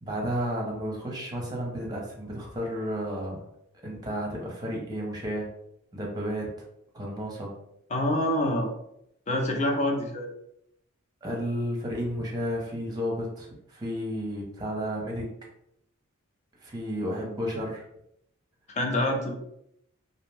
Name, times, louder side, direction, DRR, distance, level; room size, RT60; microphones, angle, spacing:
voice 1, 0.0-3.5 3.8-5.5 5.9-6.5 6.9-7.5 11.2-15.3 16.6-17.8, equal, 20° right, -2 dB, 0.6 m, -32 dB
voice 2, 7.9-8.7 9.3-10.3 18.7-19.4, left 1 dB, 30° left, 2 dB, 0.4 m, -26 dB
2.5 x 2.1 x 3.2 m, 0.77 s
head